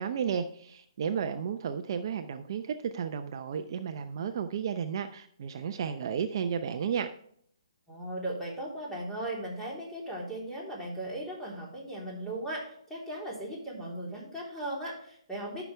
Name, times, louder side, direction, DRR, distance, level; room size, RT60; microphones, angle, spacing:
voice 1, 0.0-7.1, right 7 dB, 50° right, 8 dB, 0.7 m, -33 dB
voice 2, 7.9-15.6, right 1 dB, 5° left, -4 dB, 3.5 m, -37 dB
13.0 x 6.0 x 3.4 m, 0.64 s
figure-of-eight pair, 135°, 3 cm